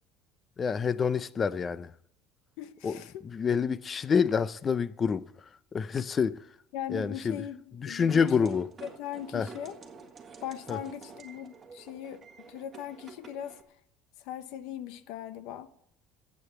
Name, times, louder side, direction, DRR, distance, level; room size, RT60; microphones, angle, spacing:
voice 1, 0.6-1.9 2.8-5.3 5.7-6.4 6.9-7.4 7.8-8.7 9.3-9.5 10.7-10.8, left 6 dB, 25° left, 0.5 m, -27 dB
voice 2, 2.6-3.2 6.7-9.8 10.4-13.6 14.2-15.7, left 11 dB, 75° left, 0.9 m, -39 dB
sound 1, 8.1-13.6, right 5 dB, 25° right, 1.6 m, -50 dB
11.0 x 8.5 x 7.8 m
cardioid pair, 145°, 0 cm